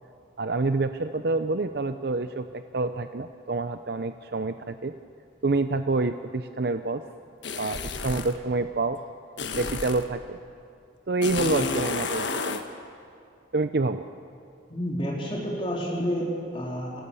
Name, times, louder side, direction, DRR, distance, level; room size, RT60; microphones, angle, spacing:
voice 1, 0.4-4.9 5.4-7.0 7.6-9.0 9.6-10.4 11.1-12.6 13.5-14.0, right 3 dB, 55° right, 9 dB, 0.6 m, -27 dB
sound 1, 7.4-8.4 9.4-10.1 11.2-12.6, left 4 dB, 75° left, 1.4 m, -31 dB
voice 2, 14.7-17.0, equal, 30° left, -3 dB, 3.8 m, -30 dB
29.0 x 16.5 x 7.0 m, 2.4 s
head